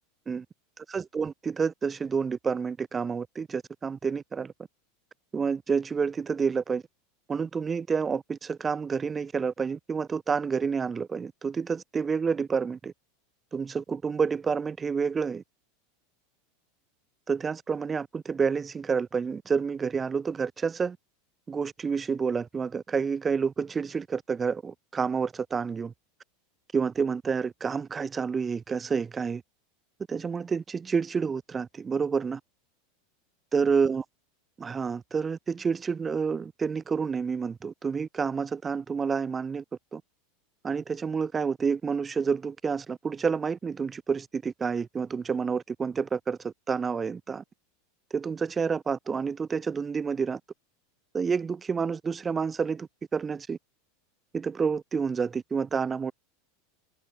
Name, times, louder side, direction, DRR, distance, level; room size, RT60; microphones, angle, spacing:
voice 1, 0.9-4.5 5.3-6.8 7.3-12.9 13.5-15.4 17.3-21.0 21.5-25.9 26.7-29.4 30.1-32.4 33.5-34.0 34.6-39.6 39.9-40.0 40.6-47.4 48.1-50.4 51.1-53.6 54.3-56.1, right 5 dB, 20° right, 5.5 m, -29 dB
hypercardioid pair, 95°, 0 cm